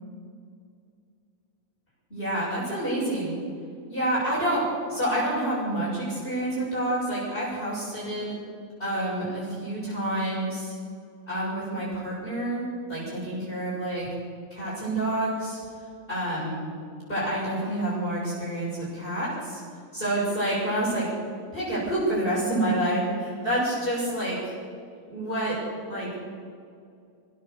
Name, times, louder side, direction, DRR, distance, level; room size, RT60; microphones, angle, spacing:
voice 1, 2.1-3.4 3.9-4.6 4.9-8.4 8.8-10.7 11.3-14.1 14.5-15.6 16.1-16.7 17.1-19.6 19.9-21.1 21.5-24.5 25.1-25.6 25.9-26.1, right 1 dB, 35° left, -7 dB, 7.7 m, -28 dB
27.5 x 14.5 x 7.0 m, 2.2 s
omnidirectional pair, 1.7 m